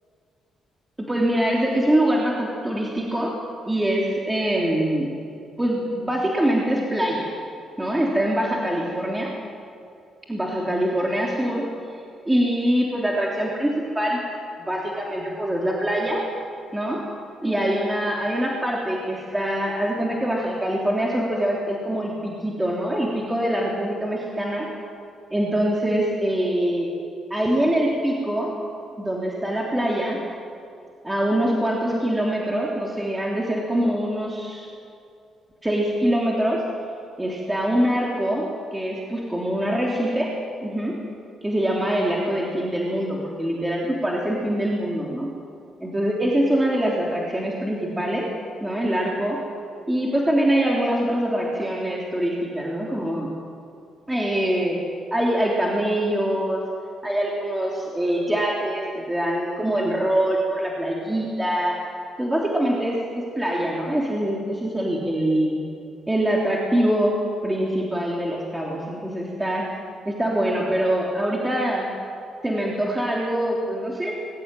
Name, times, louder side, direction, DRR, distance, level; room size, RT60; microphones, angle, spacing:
voice 1, 1.0-3.3 3.7-5.1 5.6-7.3 7.8-9.3 10.3-12.0 12.3-14.2 14.6-16.2 16.7-17.0 17.4-24.7 25.3-26.9 27.3-28.5 29.0-30.2 31.0-34.7 35.6-36.6 37.2-38.4 38.7-40.3 40.6-41.0 41.4-45.3 45.8-48.3 48.6-49.4 49.9-53.3 54.1-54.8 55.1-56.6 57.0-61.8 62.2-65.6 66.1-67.1 67.4-69.6 70.1-71.9 72.4-74.1, right 1 dB, 10° right, -3 dB, 3.4 m, -24 dB
21.5 x 16.5 x 9.2 m, 2.5 s
cardioid pair, 90°, 0 cm